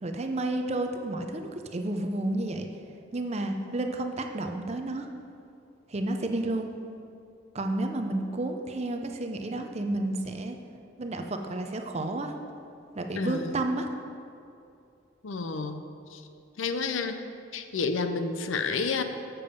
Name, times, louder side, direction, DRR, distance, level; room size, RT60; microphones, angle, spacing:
voice 1, 0.0-2.7 3.1-5.1 5.9-6.7 7.5-10.6 11.0-12.3 12.9-13.9, right 2 dB, 35° right, 5 dB, 0.6 m, -31 dB
voice 2, 13.2-13.5 15.2-15.8 16.1-16.2 16.6-17.2 17.5-19.0, left 4 dB, 85° left, 8 dB, 0.6 m, -30 dB
7.2 x 6.8 x 5.2 m, 2.6 s
head